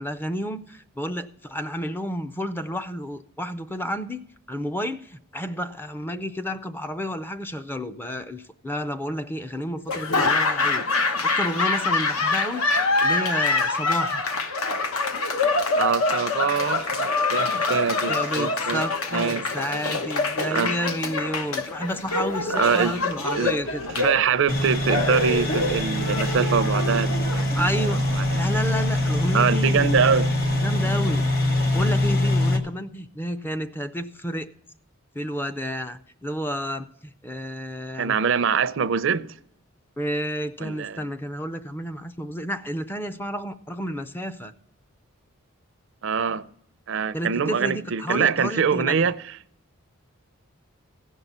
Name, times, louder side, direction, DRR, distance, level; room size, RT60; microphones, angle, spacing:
voice 1, 0.0-4.2 4.5-12.7 13.0-14.2 18.1-23.8 27.5-28.0 28.3-29.9 30.5-31.3 31.7-34.5 35.2-38.1 40.0-44.5 47.1-49.1, equal, 10° left, 0.4 m, -31 dB
Laughter / Applause, 9.9-28.0, left 3 dB, 80° left, 1.0 m, -25 dB
voice 2, 15.8-18.8 19.1-19.5 20.5-20.7 22.6-22.9 23.3-23.5 24.0-28.4 29.3-30.3 38.0-39.3 40.6-41.0 46.0-46.4 46.9-49.2, right 6 dB, 60° right, 0.5 m, -24 dB
sound 1, 24.5-32.6, left 1 dB, 45° left, 1.5 m, -23 dB
16.0 x 5.4 x 7.1 m
head